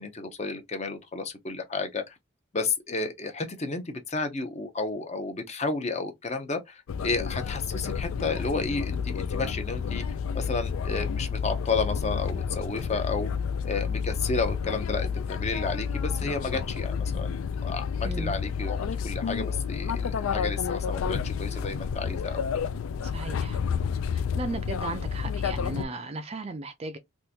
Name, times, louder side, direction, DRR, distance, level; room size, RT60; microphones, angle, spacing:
voice 1, 0.0-2.1 2.5-10.0 10.3-13.3 13.6-18.8 19.0-22.4, left 3 dB, 30° left, 0.6 m, -32 dB
sound 1, 6.9-25.9, left 6 dB, 75° left, 0.3 m, -30 dB
voice 2, 18.0-18.4 23.1-23.6 24.4-27.0, right 3 dB, 30° right, 0.4 m, -36 dB
3.5 x 2.6 x 2.7 m
head